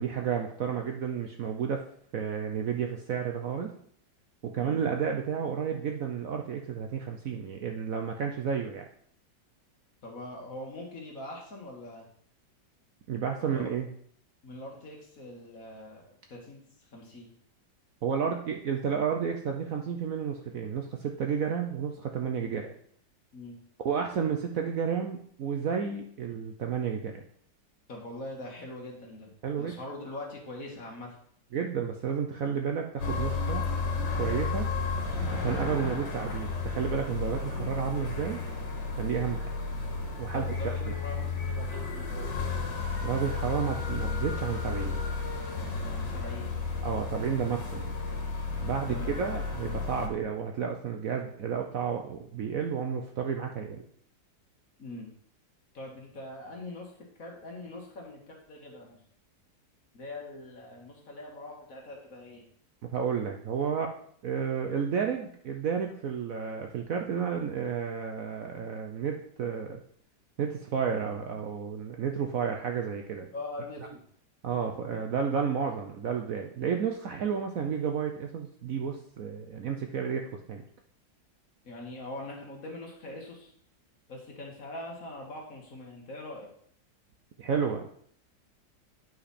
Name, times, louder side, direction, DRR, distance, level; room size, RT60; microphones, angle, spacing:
voice 1, 0.0-1.8 2.1-3.7 4.4-8.9 13.1-13.9 18.0-22.7 23.8-27.2 29.4-29.7 31.5-33.6 34.2-34.7 35.3-38.4 39.0-39.5 40.2-40.9 43.0-45.0 46.8-47.9 48.6-53.8 62.9-63.9 64.2-69.8 70.4-73.3 74.4-80.6 87.4-87.9, right 7 dB, 60° right, 3 dB, 0.9 m, -31 dB
voice 2, 10.0-12.1 13.4-13.7 14.4-16.6 16.9-17.3 22.4-22.5 23.3-23.6 27.9-31.1 40.3-42.2 45.9-46.5 48.9-49.1 54.8-55.1 55.7-56.9 57.2-59.0 59.9-62.4 73.3-73.9 81.6-83.5 84.1-86.5, left 2 dB, 50° left, -1 dB, 2.1 m, -42 dB
sound 1, 33.0-50.1, left 4 dB, 75° left, 2.2 m, -33 dB
9.6 x 5.5 x 4.2 m, 0.63 s
omnidirectional pair, 2.0 m